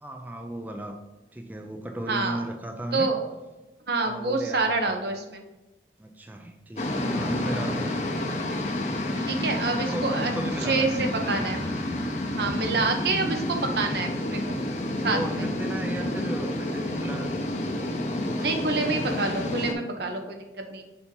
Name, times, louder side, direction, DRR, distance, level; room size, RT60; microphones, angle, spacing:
voice 1, 0.0-1.0 1.3-3.1 4.0-4.9 6.0-8.1 8.9-9.5 9.8-11.0 11.3-11.4 12.5-12.9 15.0-17.6 18.1-18.5, right 1 dB, 10° right, 3 dB, 0.3 m, -36 dB
voice 2, 2.1-2.4 2.9-3.2 3.9-5.4 9.3-10.3 10.7-11.6 12.4-14.6 15.0-15.4 18.4-20.8, right 3 dB, 70° right, 4 dB, 0.9 m, -27 dB
sound 1, 6.8-19.7, left 1 dB, 40° left, 0.7 m, -29 dB
sound 2, 11.2-13.9, right 2 dB, 40° right, 1.2 m, -45 dB
6.9 x 2.8 x 5.2 m, 1.1 s
head